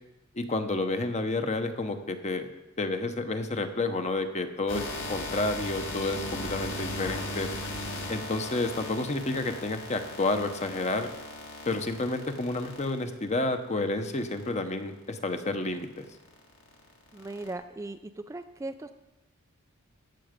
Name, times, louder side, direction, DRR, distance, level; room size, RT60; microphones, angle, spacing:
voice 1, 0.3-2.5 2.8-7.5 8.1-11.1 11.7-16.1, left 2 dB, 35° left, 7 dB, 0.9 m, -30 dB
sound 1, 4.7-13.3 14.0-14.5 15.1-15.4 15.8-17.5, left 2 dB, 60° left, 1.9 m, -38 dB
voice 2, 17.1-18.0 18.3-18.9, right 2 dB, 15° right, 8 dB, 0.3 m, -38 dB
15.5 x 7.0 x 5.1 m, 1.0 s
head